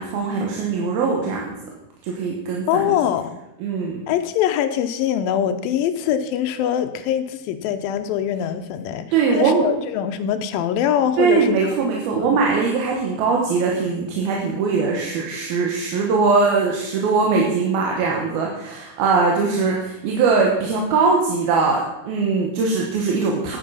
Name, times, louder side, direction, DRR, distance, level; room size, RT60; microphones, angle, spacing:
voice 1, 0.0-1.5 2.0-3.0 3.6-4.0 9.1-9.7 11.2-23.6, right 4 dB, 85° right, -1 dB, 3.1 m, -21 dB
voice 2, 2.7-3.3 4.1-9.1 9.3-11.5 12.2-12.4, left 10 dB, 85° left, 8 dB, 2.5 m, -23 dB
10.0 x 9.0 x 5.6 m, 0.92 s
omnidirectional pair, 4.3 m